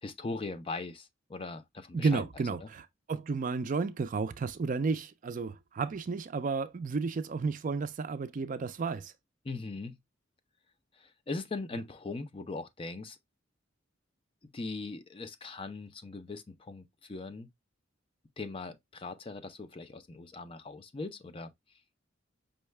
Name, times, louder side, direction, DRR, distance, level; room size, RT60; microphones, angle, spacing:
voice 1, 0.0-2.7 9.4-10.0 10.9-13.2 14.5-17.5 18.4-21.5, left 3 dB, 30° left, 0.4 m, -40 dB
voice 2, 1.9-9.1, right 4 dB, 45° right, 0.4 m, -32 dB
5.4 x 2.2 x 3.2 m
head